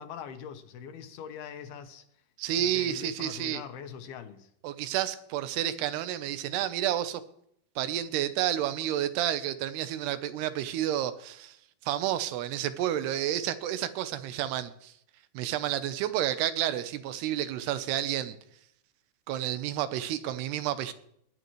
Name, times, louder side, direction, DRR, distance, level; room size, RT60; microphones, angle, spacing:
voice 1, 0.0-2.1 2.6-4.5, left 8 dB, 80° left, 8 dB, 2.9 m, -42 dB
voice 2, 2.4-3.6 4.6-7.2 7.8-11.6 11.9-14.9 15.3-18.4 19.3-20.9, right 11 dB, 90° right, 12 dB, 2.9 m, -30 dB
20.5 x 10.5 x 3.1 m, 0.70 s
omnidirectional pair, 4.6 m